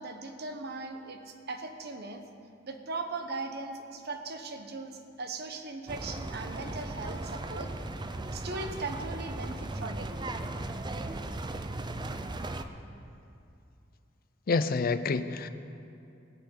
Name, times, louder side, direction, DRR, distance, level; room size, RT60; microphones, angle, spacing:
voice 1, 0.0-2.2 2.6-7.7 8.3-10.1, right 3 dB, 55° right, 6 dB, 1.0 m, -39 dB
sound 1, 5.9-12.6, right 2 dB, 25° right, 0.5 m, -37 dB
voice 2, 14.5-15.5, left 4 dB, 50° left, 12 dB, 0.5 m, -28 dB
17.0 x 5.8 x 8.5 m, 2.6 s
head